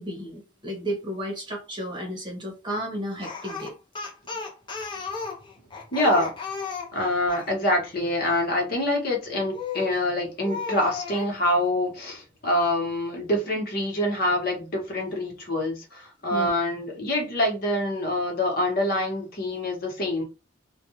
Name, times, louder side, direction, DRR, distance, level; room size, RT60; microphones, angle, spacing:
voice 1, 0.0-3.7 16.3-16.5, equal, 25° right, 0.9 m, -33 dB
Speech, 3.2-7.5 9.5-10.0 10.4-11.3, left 5 dB, 25° left, 0.7 m, -34 dB
voice 2, 5.9-6.3 6.9-20.2, left 1 dB, 55° left, 1.2 m, -25 dB
2.5 x 2.3 x 2.9 m
head